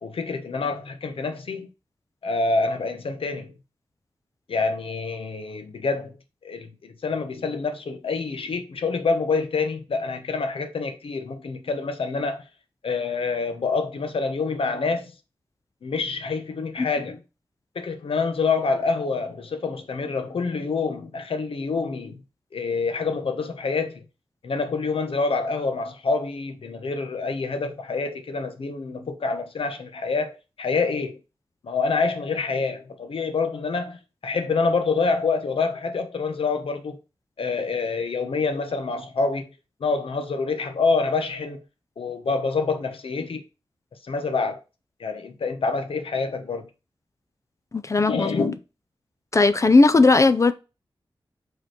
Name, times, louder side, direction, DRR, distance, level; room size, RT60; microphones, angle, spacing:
voice 1, 0.0-1.7 2.2-3.5 4.5-6.1 6.4-12.4 12.8-15.1 15.8-17.2 17.7-22.2 22.5-24.0 24.4-31.2 31.6-34.0 34.2-37.0 37.4-39.5 39.8-41.6 42.0-43.4 44.1-44.6 45.0-46.7 48.1-48.6, left 4 dB, 85° left, 1.1 m, -26 dB
voice 2, 47.7-48.5 49.3-50.5, left 3 dB, 35° left, 0.5 m, -17 dB
5.3 x 4.2 x 4.3 m
wide cardioid pair, 110°, 9 cm